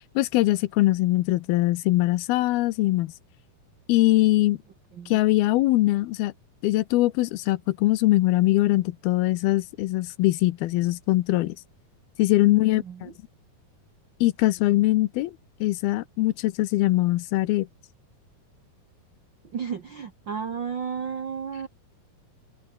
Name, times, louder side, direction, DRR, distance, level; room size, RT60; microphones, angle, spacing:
voice 1, 0.2-3.1 3.9-4.6 5.1-6.3 6.6-11.6 12.2-13.1 14.2-15.3 15.6-17.7, left 17 dB, 90° left, 2.8 m, -22 dB
voice 2, 12.4-13.1 19.4-21.7, right 7 dB, 60° right, 1.1 m, -33 dB
omnidirectional pair, 4.3 m